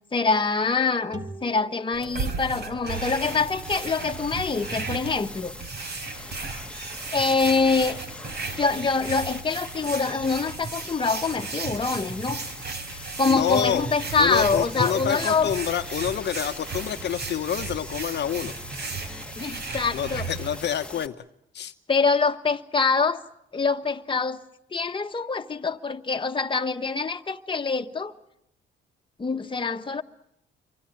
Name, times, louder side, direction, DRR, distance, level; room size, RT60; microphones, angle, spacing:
voice 1, 0.1-5.5 7.1-8.0 8.6-12.4 12.9-15.5 19.4-20.3 21.9-23.2 23.5-24.4 24.7-28.1 29.2-30.0, left 4 dB, 25° left, 1.4 m, -25 dB
sound 1, 1.1-4.5, right 2 dB, 20° right, 3.5 m, -46 dB
sound 2, 1.9-20.6, right 4 dB, 60° right, 4.1 m, -35 dB
sound 3, 2.9-21.1, left 2 dB, 5° left, 1.7 m, -42 dB
voice 2, 13.3-13.8 14.2-18.5 19.9-21.1 21.5-21.7, left 9 dB, 60° left, 1.0 m, -27 dB
27.5 x 23.5 x 9.0 m
cardioid pair, 90°, 20 cm